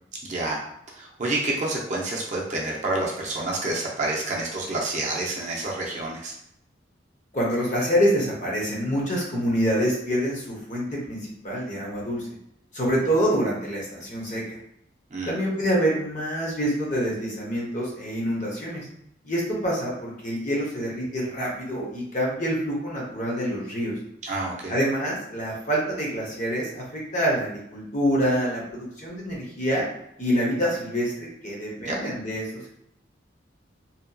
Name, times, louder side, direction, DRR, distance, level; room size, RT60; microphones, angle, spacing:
voice 1, 0.2-0.6 0.9-6.4 15.1-15.4 24.2-24.7 31.8-32.0, right 2 dB, 40° right, -3 dB, 0.5 m, -28 dB
voice 2, 7.3-12.3 12.7-14.6 15.3-18.9 19.2-23.9 24.7-29.8 30.2-32.6, equal, 40° left, -3 dB, 0.7 m, -26 dB
2.8 x 2.6 x 2.2 m, 0.76 s
head